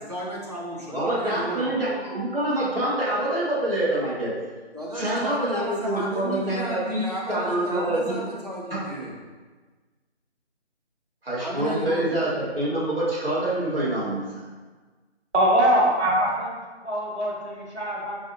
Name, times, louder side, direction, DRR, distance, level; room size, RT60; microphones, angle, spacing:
voice 1, 0.1-1.7 4.7-9.2 11.4-12.2, right 1 dB, 35° right, -5 dB, 0.7 m, -33 dB
voice 2, 0.9-4.3 4.9-8.2 11.2-14.4, right 1 dB, 55° right, -7 dB, 1.3 m, -26 dB
voice 3, 15.3-16.6 16.8-18.2, right 1 dB, 80° right, -3 dB, 1.2 m, -22 dB
4.7 x 2.6 x 2.9 m, 1.3 s
figure-of-eight pair, 165°, 34 cm